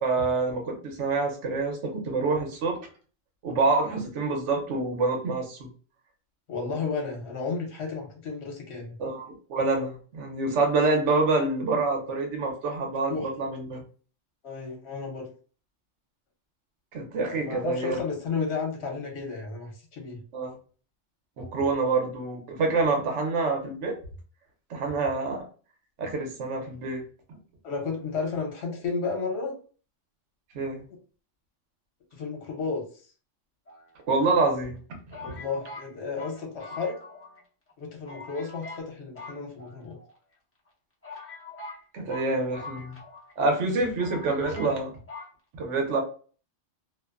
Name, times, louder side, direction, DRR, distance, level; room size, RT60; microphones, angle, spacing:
voice 1, 0.0-2.9 3.4-5.7 9.0-13.8 16.9-18.0 20.3-20.6 21.4-24.0 24.7-25.5 26.0-27.0 30.5-30.8 34.1-34.8 41.9-43.0 43.4-44.9 45.5-46.0, right 3 dB, 70° right, 1.0 m, -26 dB
voice 2, 6.5-9.0 13.1-13.3 14.4-15.3 17.2-20.2 27.6-29.5 32.1-33.1 35.2-37.0 37.8-40.0, left 4 dB, 60° left, 1.0 m, -32 dB
sound 1, 33.7-34.4 35.1-37.4 37.7-37.8 38.1-38.9 39.1-40.1 40.7-40.8 41.0-43.3 43.6-43.7 44.0-44.8 45.1-45.3, left 3 dB, 20° left, 0.4 m, -43 dB
2.6 x 2.1 x 2.3 m
omnidirectional pair, 1.3 m